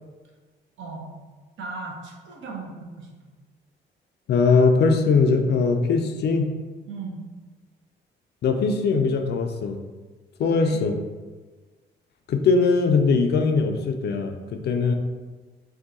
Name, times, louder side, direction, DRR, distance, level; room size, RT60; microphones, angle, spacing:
voice 1, 0.8-1.1 1.6-3.1 6.9-7.2 10.6-10.8, right 3 dB, 75° right, -1 dB, 0.8 m, -36 dB
voice 2, 4.3-6.5 8.4-9.8 10.4-11.0 12.3-14.9, left 4 dB, 55° left, 5 dB, 0.4 m, -21 dB
2.7 x 2.2 x 3.7 m, 1.3 s
cardioid pair, 90°, 20 cm